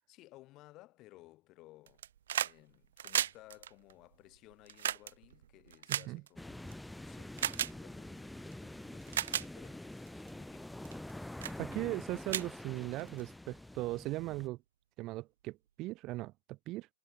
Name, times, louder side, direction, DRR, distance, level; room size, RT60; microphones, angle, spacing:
voice 1, 0.1-2.1 2.3-6.7 7.0-11.1, left 18 dB, 35° left, 6.9 m, -59 dB
sound 1, 1.9-2.6 2.8-6.7 7.4-7.7 8.5-8.6 9.0-9.5 10.1-10.3 10.8-11.1 11.4-11.6 11.9-12.0 12.3-13.2 14.4-14.5, right 10 dB, 75° right, 0.7 m, -35 dB
voice 2, 5.9-6.2 11.6-14.6 15.0-16.9, right 19 dB, 35° right, 1.2 m, -39 dB
sound 2, 6.4-14.5, left 1 dB, 5° left, 0.8 m, -46 dB
hypercardioid pair, 135°, 0 cm